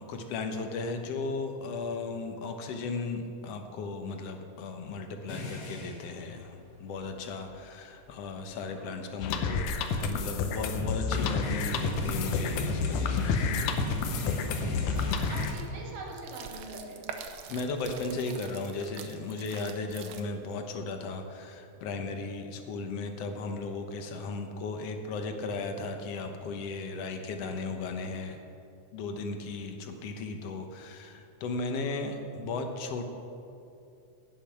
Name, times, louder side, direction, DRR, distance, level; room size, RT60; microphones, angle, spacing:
voice 1, 0.0-13.4 17.5-28.4 28.9-33.0, left 3 dB, 65° left, 5 dB, 1.8 m, -36 dB
sound 1, 5.3-6.1 7.5-7.6 8.0-8.1 8.6-8.9 10.5-15.5, left 1 dB, 50° left, 1.1 m, -36 dB
sound 2, 9.2-15.5, left 5 dB, 85° left, 2.3 m, -30 dB
voice 2, 14.9-17.1, right 2 dB, 55° right, -1 dB, 2.6 m, -43 dB
sound 3, 14.9-20.6, right 7 dB, 85° right, 1.1 m, -45 dB
17.0 x 7.0 x 5.8 m, 2.8 s
omnidirectional pair, 3.5 m